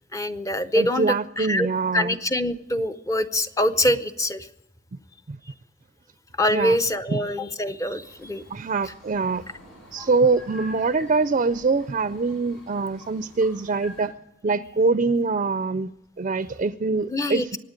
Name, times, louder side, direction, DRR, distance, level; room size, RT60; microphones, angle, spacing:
voice 1, 0.0-1.1 1.4-1.7 1.9-4.5 6.4-8.4 10.0-10.1 17.1-17.6, left 1 dB, 15° left, 11 dB, 0.6 m, -24 dB
voice 2, 0.8-2.2 5.3-5.4 6.5-6.8 7.1-7.2 8.5-9.4 9.9-14.1 14.4-15.9 16.2-17.6, right 4 dB, 40° right, 13 dB, 0.4 m, -24 dB
sound 1, 8.0-14.1, left 1 dB, 70° left, 7.5 m, -47 dB
24.0 x 9.5 x 5.1 m, 0.93 s
head